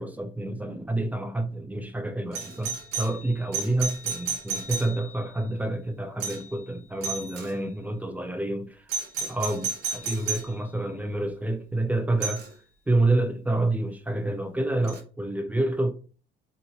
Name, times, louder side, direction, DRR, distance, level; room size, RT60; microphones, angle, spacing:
voice 1, 0.0-8.9 9.2-12.4 12.9-15.9, right 2 dB, 10° right, 0.4 m, -28 dB
Doorbell, 2.3-5.3 6.2-6.6 7.0-7.5 8.9-10.5 12.2-12.5 14.9-15.0, right 5 dB, 90° right, 0.8 m, -33 dB
2.8 x 2.8 x 2.8 m
cardioid pair, 110°, 17 cm